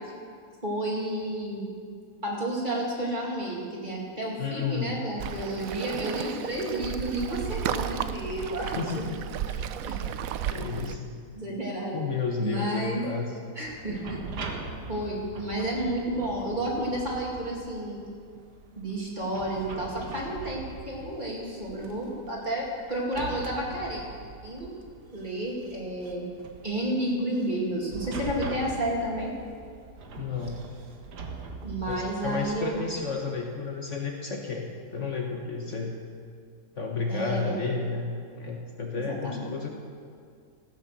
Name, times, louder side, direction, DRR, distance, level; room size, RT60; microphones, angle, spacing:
voice 1, 0.6-1.7 2.2-9.0 9.9-10.0 11.4-12.0 12.4-13.0 13.6-14.2 14.9-18.0 18.8-24.0 24.4-24.7 25.1-26.3 26.6-29.3 31.6-32.9 37.1-37.7 38.9-39.5, right 1 dB, 30° right, -4 dB, 2.6 m, -31 dB
voice 2, 4.4-5.0 8.6-9.2 9.5-9.7 10.0-11.2 11.9-13.3 30.2-30.6 31.9-35.9 36.7-39.7, left 4 dB, 50° left, 1 dB, 1.3 m, -32 dB
Waves surf, 5.2-11.0, right 9 dB, 70° right, 0.9 m, -33 dB
sound 1, 13.6-33.4, right 3 dB, 90° right, 1.7 m, -42 dB
15.0 x 8.7 x 6.6 m, 2.2 s
omnidirectional pair, 1.7 m